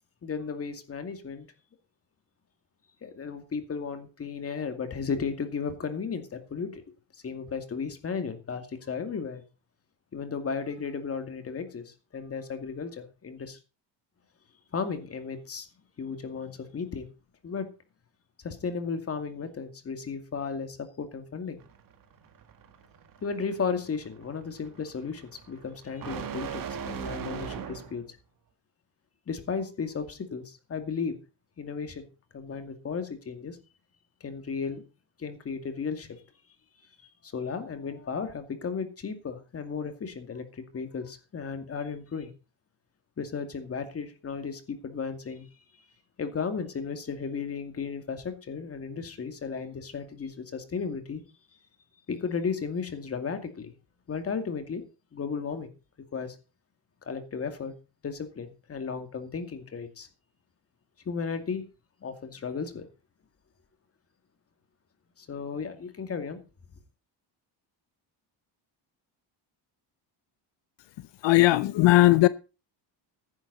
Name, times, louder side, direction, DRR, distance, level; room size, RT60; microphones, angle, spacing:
voice 1, 0.2-1.5 3.0-6.8 7.2-9.4 10.1-13.6 14.7-15.7 16.0-17.1 17.4-17.7 18.4-21.6 23.2-28.2 29.3-31.2 31.6-32.1 32.3-33.6 34.2-34.8 35.2-36.2 37.2-42.3 43.2-45.5 46.2-51.2 52.1-53.7 54.1-54.8 55.1-55.7 56.1-56.4 57.0-57.7 58.0-60.1 61.1-61.6 62.0-62.9 65.2-66.4, left 5 dB, 30° left, 2.4 m, -34 dB
sound 1, 21.6-28.0, right 7 dB, 50° right, 2.0 m, -40 dB
voice 2, 71.2-72.3, left 18 dB, 80° left, 0.8 m, -18 dB
14.0 x 10.5 x 4.1 m
cardioid pair, 155°, 43 cm